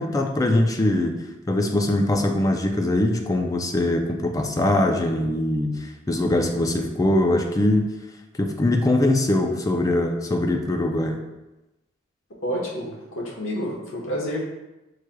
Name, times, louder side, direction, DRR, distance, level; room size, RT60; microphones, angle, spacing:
voice 1, 0.0-7.9 8.4-11.2, left 1 dB, 15° left, 4 dB, 0.3 m, -22 dB
voice 2, 12.4-14.4, equal, 80° left, -4 dB, 1.1 m, -29 dB
6.0 x 3.2 x 2.2 m, 1.0 s
head